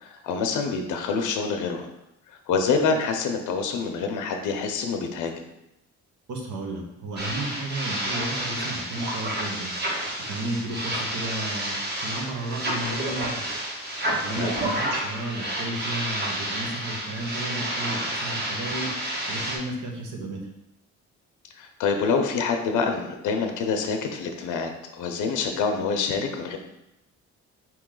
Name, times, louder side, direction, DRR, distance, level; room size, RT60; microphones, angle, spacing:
voice 1, 0.0-1.9 2.3-5.4 14.3-14.5 21.6-26.6, left 5 dB, 90° left, 5 dB, 0.6 m, -26 dB
voice 2, 6.3-9.7 10.3-13.4 14.1-18.9 19.3-20.4, right 2 dB, 80° right, 1 dB, 1.0 m, -33 dB
sound 1, 7.2-19.6, right 1 dB, 35° right, 1.2 m, -30 dB
4.4 x 3.0 x 3.7 m, 0.87 s
cardioid pair, 90°, 30 cm